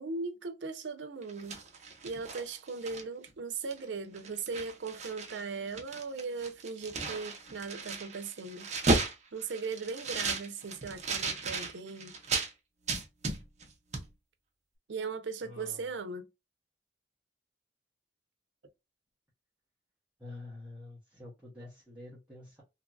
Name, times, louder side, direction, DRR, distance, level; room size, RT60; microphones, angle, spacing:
voice 1, 0.0-1.6 2.0-8.7 9.3-12.1 14.9-16.3, right 4 dB, 85° right, 0.6 m, -38 dB
sound 1, 1.2-3.3 3.7-3.9 4.1-5.4 5.7-12.5 12.9-13.7 13.9-14.1, right 3 dB, 40° right, 0.7 m, -34 dB
voice 2, 15.4-15.9 20.2-22.6, left 2 dB, 10° right, 0.9 m, -48 dB
2.8 x 2.6 x 2.3 m
head